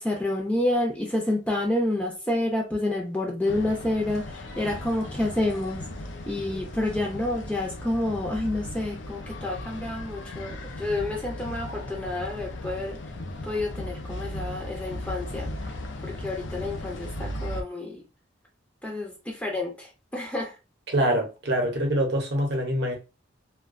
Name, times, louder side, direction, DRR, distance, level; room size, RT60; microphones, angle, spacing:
voice 1, 0.0-5.8 6.3-13.0 13.4-15.5 16.0-18.0 18.8-20.5, left 1 dB, 5° left, 0.4 m, -29 dB
sound 1, 3.4-17.6, left 1 dB, 75° left, 0.5 m, -37 dB
voice 2, 20.9-23.0, right 1 dB, 60° right, 0.7 m, -25 dB
2.4 x 2.2 x 2.4 m
head